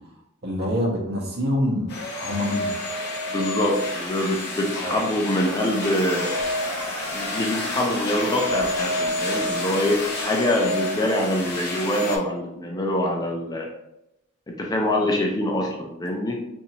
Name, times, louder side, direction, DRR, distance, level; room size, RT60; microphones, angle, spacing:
voice 1, 0.4-1.9 2.2-2.7 4.7-5.0, left 1 dB, 50° right, -1 dB, 0.9 m, -25 dB
sound 1, 1.9-12.2, left 2 dB, 50° left, 0.8 m, -29 dB
voice 2, 3.3-6.3 7.1-13.7 14.5-16.4, left 1 dB, 20° left, 1 dB, 0.4 m, -25 dB
Crowd, 5.1-12.3, right 1 dB, 85° right, 0.9 m, -38 dB
2.8 x 2.6 x 4.2 m, 0.84 s
head